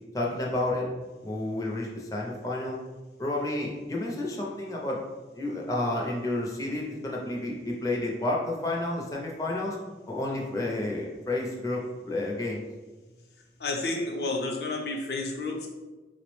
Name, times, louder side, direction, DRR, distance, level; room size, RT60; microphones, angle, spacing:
voice 1, 0.1-0.9 1.2-2.8 3.2-5.0 5.3-9.8 10.1-12.6, left 2 dB, 20° left, -2 dB, 0.4 m, -30 dB
voice 2, 13.6-15.7, left 2 dB, 65° left, 1 dB, 0.6 m, -30 dB
4.6 x 2.0 x 3.0 m, 1.2 s
head